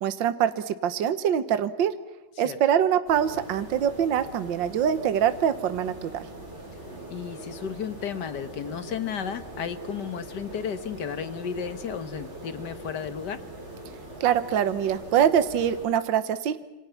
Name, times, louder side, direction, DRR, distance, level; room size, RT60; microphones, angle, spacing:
voice 1, 0.0-1.9 2.4-6.3 14.2-16.6, right 9 dB, 65° right, 11 dB, 1.7 m, -24 dB
sound 1, 3.1-15.9, right 1 dB, 30° right, 7.0 m, -42 dB
voice 2, 7.1-13.4, left 7 dB, 55° left, 11 dB, 1.7 m, -33 dB
27.5 x 26.0 x 5.9 m, 1.1 s
omnidirectional pair, 2.3 m